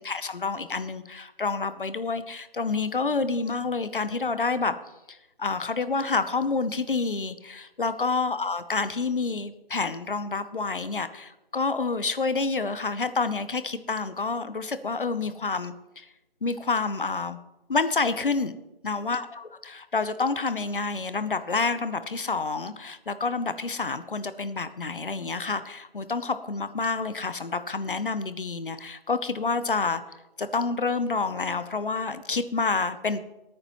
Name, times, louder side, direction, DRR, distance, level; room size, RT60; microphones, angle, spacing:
voice 1, 0.0-4.7 5.4-16.1 16.4-17.4 17.7-18.5 18.8-30.0 30.4-33.2, left 4 dB, 60° left, 12 dB, 0.8 m, -28 dB
20.0 x 8.8 x 3.1 m, 0.99 s
figure-of-eight pair, 170°, 30 cm